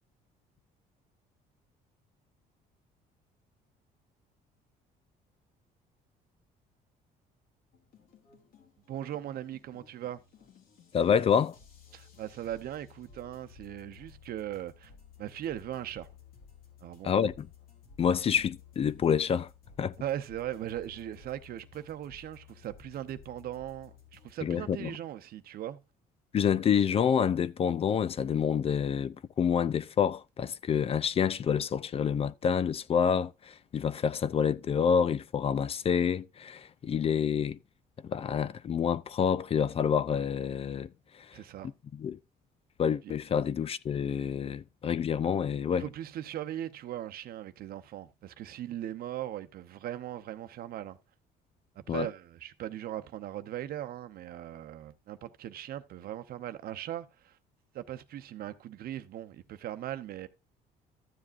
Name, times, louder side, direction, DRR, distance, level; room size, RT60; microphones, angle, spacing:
sound 1, 7.7-24.3, left 7 dB, 60° left, 2.5 m, -56 dB
voice 1, 8.9-10.2 11.9-14.9 15.2-16.1 16.8-17.1 20.0-25.8 41.3-41.7 45.8-51.0 51.8-57.4 57.7-60.3, right 12 dB, 65° right, 0.8 m, -39 dB
voice 2, 10.9-11.6 17.0-17.5 18.0-19.5 19.8-19.9 24.4-24.9 26.3-37.6 38.1-40.9 41.2-41.4 41.9-42.2 42.8-45.8 51.9-52.1, left 7 dB, 35° left, 0.4 m, -28 dB
13.5 x 7.4 x 2.5 m
cardioid pair, 110°, 17 cm